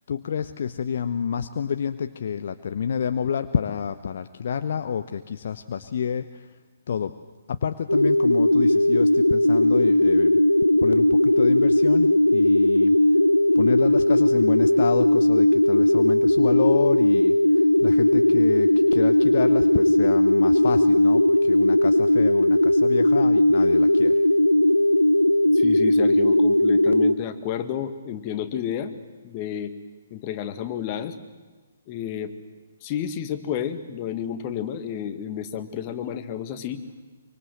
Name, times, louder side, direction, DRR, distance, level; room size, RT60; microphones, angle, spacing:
voice 1, 0.1-6.5 6.9-7.1 7.5-10.3 10.8-13.0 13.6-24.1, left 7 dB, 55° left, 10 dB, 0.9 m, -29 dB
sound 1, 7.9-27.1, left 1 dB, 90° left, 0.9 m, -18 dB
voice 2, 25.5-28.9 29.2-29.7 30.1-31.2 31.9-32.3 32.8-36.8, left 9 dB, 30° left, 8 dB, 1.9 m, -31 dB
25.0 x 24.5 x 7.9 m, 1.3 s
figure-of-eight pair, 130°, 0 cm